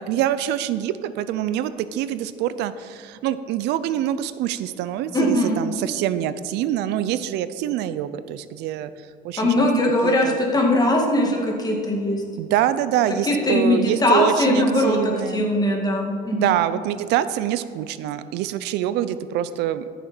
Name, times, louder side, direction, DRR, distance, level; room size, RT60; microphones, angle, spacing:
voice 1, 0.0-8.9 9.2-9.7 10.0-10.4 12.4-15.5 16.3-19.8, right 11 dB, 85° right, 14 dB, 0.5 m, -25 dB
voice 2, 5.1-5.6 9.4-12.2 13.2-16.6, left 1 dB, 25° left, 0 dB, 2.1 m, -20 dB
14.0 x 6.7 x 4.5 m, 2.4 s
cardioid pair, 110°, 17 cm